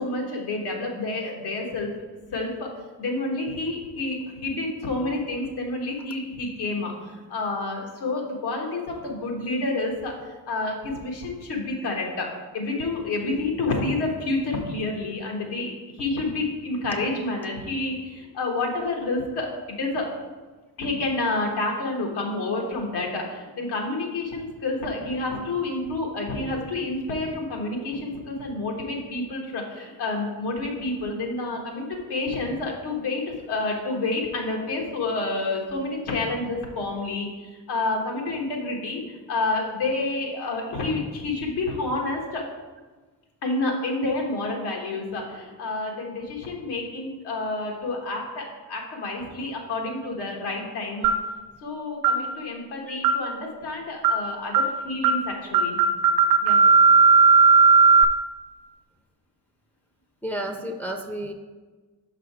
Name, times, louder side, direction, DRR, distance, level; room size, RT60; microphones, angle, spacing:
voice 1, 0.0-2.0 2.3-2.7 3.0-10.1 10.5-20.1 20.8-37.3 37.7-42.4 43.4-51.1 51.6-55.8 56.4-56.6, left 2 dB, 90° left, 0 dB, 1.4 m, -29 dB
sound 1, 51.0-51.3 52.0-52.2 53.0-53.3 54.0-54.2 54.5-54.7 55.0-55.2 55.5-58.0, right 5 dB, 70° right, 0.5 m, -16 dB
voice 2, 60.2-61.3, right 1 dB, 5° left, 2 dB, 0.5 m, -31 dB
5.8 x 4.9 x 4.7 m, 1.3 s
cardioid pair, 110°, 39 cm